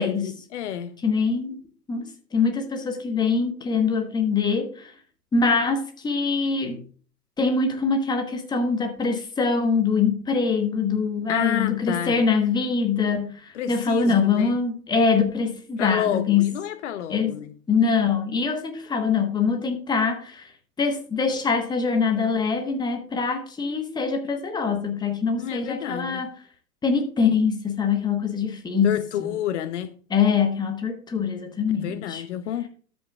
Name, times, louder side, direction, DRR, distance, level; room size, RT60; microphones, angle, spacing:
voice 1, 0.0-0.9 11.3-12.2 13.5-14.6 15.8-17.5 25.4-26.2 28.8-29.9 31.8-32.7, left 10 dB, 50° left, 0.8 m, -29 dB
voice 2, 1.0-1.6 1.9-4.9 5.3-6.8 7.4-16.5 17.1-17.4 17.7-20.5 20.8-26.3 26.8-29.0 30.1-32.2, left 5 dB, 10° left, 1.2 m, -23 dB
13.0 x 7.7 x 2.4 m
figure-of-eight pair, 115°, 48 cm